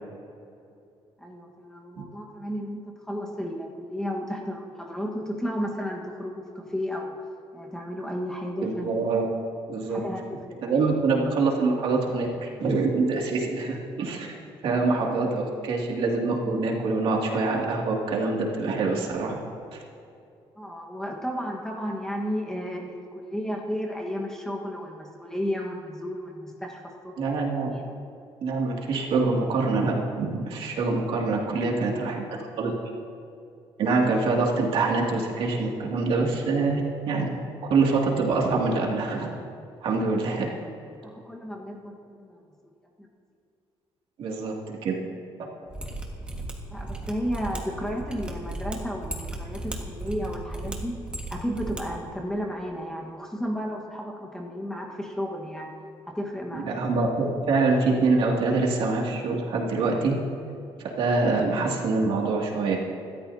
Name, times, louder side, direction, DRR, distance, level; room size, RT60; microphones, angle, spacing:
voice 1, 1.2-7.2 7.5-8.9 9.9-10.6 14.7-14.9 20.6-27.4 27.7-27.8 39.8-40.4 41.0-42.4 43.0-43.1 46.5-51.0 51.3-55.7 56.1-56.6, equal, 5° left, -1 dB, 1.5 m, -33 dB
voice 2, 8.6-9.3 9.7-10.0 10.6-14.3 14.6-19.4 19.7-19.8 27.2-27.7 28.4-32.2 32.6-32.7 33.8-37.3 37.7-39.4 39.8-40.5 44.2-44.5 44.8-45.0 56.5-60.1 61.0-62.8, right 3 dB, 65° right, -1 dB, 2.5 m, -25 dB
Mechanisms, 45.7-51.8 52.1-52.2, right 2 dB, 10° right, 1.7 m, -35 dB
26.5 x 13.5 x 2.8 m, 2.6 s
cardioid pair, 160°, 10 cm